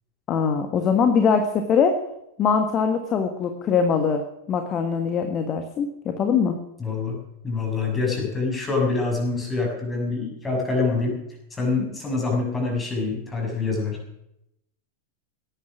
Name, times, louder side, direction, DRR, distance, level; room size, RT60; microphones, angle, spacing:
voice 1, 0.3-1.9 2.4-4.2 4.5-6.6, left 6 dB, 30° left, 6 dB, 1.6 m, -22 dB
voice 2, 6.8-7.2 7.4-11.2 11.5-14.2, left 3 dB, 15° left, 0 dB, 6.5 m, -25 dB
17.5 x 11.0 x 6.2 m, 0.83 s
figure-of-eight pair, 90°, 0 cm